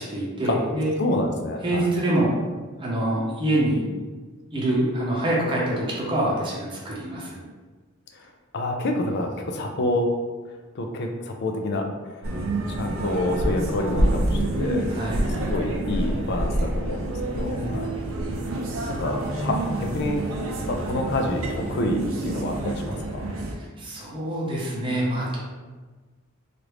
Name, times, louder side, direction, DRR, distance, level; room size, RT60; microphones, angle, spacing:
voice 1, 0.0-0.9 1.6-2.4 2.8-3.8 4.5-7.4 14.9-15.3 17.5-17.9 23.6-25.4, right 1 dB, 25° right, -6 dB, 0.7 m, -25 dB
voice 2, 1.0-1.8 8.5-10.1 10.8-12.1 12.7-14.8 15.4-17.9 19.0-20.2 20.7-23.3, left 1 dB, 55° left, 3 dB, 0.4 m, -28 dB
sound 1, 12.2-23.5, right 1 dB, 75° right, 0.5 m, -27 dB
3.2 x 2.5 x 3.0 m, 1.3 s
head